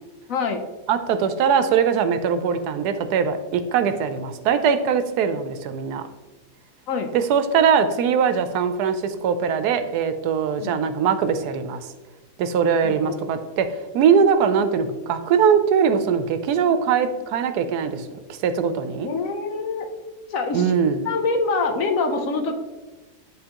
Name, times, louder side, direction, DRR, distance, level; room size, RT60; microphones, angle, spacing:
voice 1, 0.3-0.6 6.9-7.1 10.6-10.8 12.8-13.2 19.0-19.9 20.3-20.7 21.0-22.5, left 4 dB, 65° left, 4 dB, 1.0 m, -25 dB
voice 2, 0.9-6.0 7.1-11.9 12.4-13.7 13.9-19.1 20.5-21.0, right 7 dB, 90° right, 10 dB, 1.1 m, -21 dB
9.9 x 3.6 x 2.9 m, 1.2 s
omnidirectional pair, 1.6 m